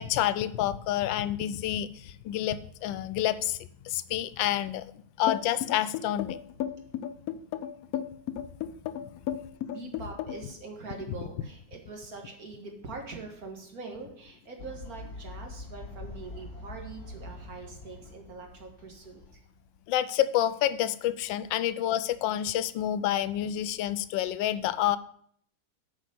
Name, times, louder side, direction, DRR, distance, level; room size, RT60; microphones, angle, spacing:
voice 1, 0.0-4.9 5.2-6.4 9.0-9.1 19.9-25.0, left 12 dB, 85° left, 15 dB, 1.3 m, -28 dB
sound 1, 5.3-10.5, left 10 dB, 70° left, 0.9 m, -34 dB
voice 2, 9.7-19.4, right 3 dB, 50° right, 2 dB, 2.1 m, -43 dB
Fowl, 14.6-19.9, left 2 dB, 50° left, 3.3 m, -44 dB
8.5 x 5.2 x 6.8 m, 0.63 s
omnidirectional pair, 2.0 m